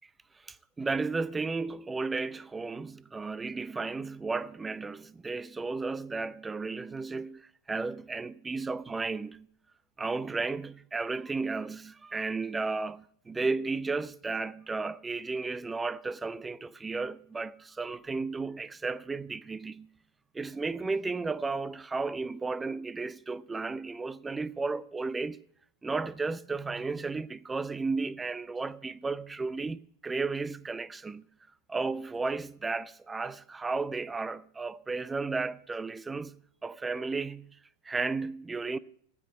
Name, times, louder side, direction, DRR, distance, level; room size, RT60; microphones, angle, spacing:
voice 1, 0.4-9.5 10.0-19.9 20.3-25.4 25.8-31.2 31.7-37.6 37.8-38.8, right 4 dB, 10° right, 0.4 m, -34 dB
15.5 x 6.0 x 9.6 m
figure-of-eight pair, 90°, 0 cm